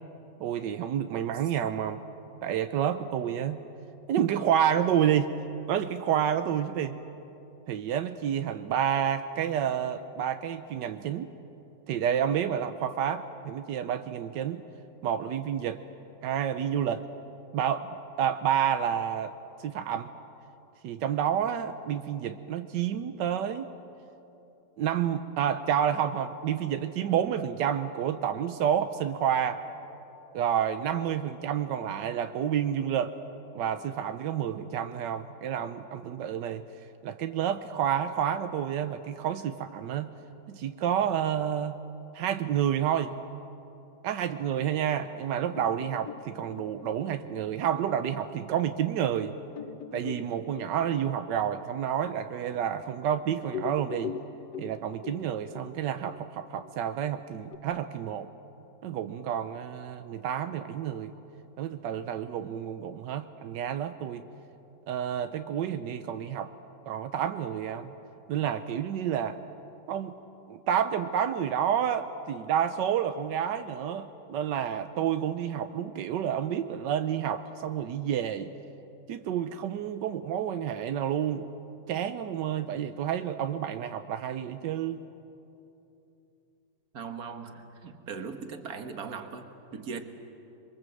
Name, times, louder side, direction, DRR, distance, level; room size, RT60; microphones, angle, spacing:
voice 1, 0.4-2.0 2.4-3.6 4.1-5.3 5.7-6.9 7.7-11.3 11.9-14.6 15.0-15.8 16.2-17.1 17.5-17.9 18.2-19.3 19.6-20.1 20.8-23.7 24.8-29.6 30.3-33.1 33.5-36.6 37.0-40.1 40.5-41.8 42.1-43.1 44.0-49.3 49.9-54.1 54.6-58.3 58.8-61.1 61.6-64.2 64.9-66.5 66.9-67.9 68.3-69.4 69.9-70.2 70.5-78.5 79.1-81.5 81.9-85.0, right 9 dB, 90° right, 9 dB, 1.4 m, -29 dB
sound 1, 45.5-48.6 49.1-49.2 49.5-53.1 53.4-57.6, left 7 dB, 75° left, 1.4 m, -42 dB
voice 2, 86.9-90.0, right 5 dB, 60° right, 7 dB, 1.9 m, -39 dB
27.0 x 23.0 x 7.7 m, 2.9 s
omnidirectional pair, 1.8 m